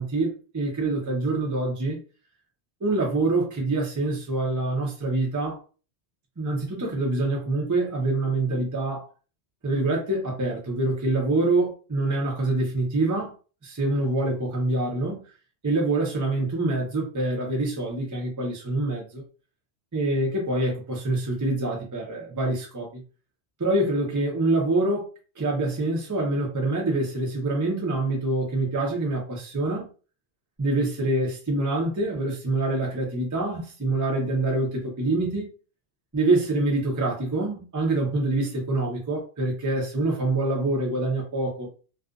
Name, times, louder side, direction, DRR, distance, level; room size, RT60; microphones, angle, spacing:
voice 1, 0.0-2.0 2.8-5.6 6.4-9.1 9.6-13.3 13.6-15.2 15.6-19.2 19.9-23.0 23.6-25.1 25.4-29.9 30.6-35.5 36.1-41.7, right 2 dB, 20° right, 0.6 m, -25 dB
2.4 x 2.4 x 2.4 m
omnidirectional pair, 1.2 m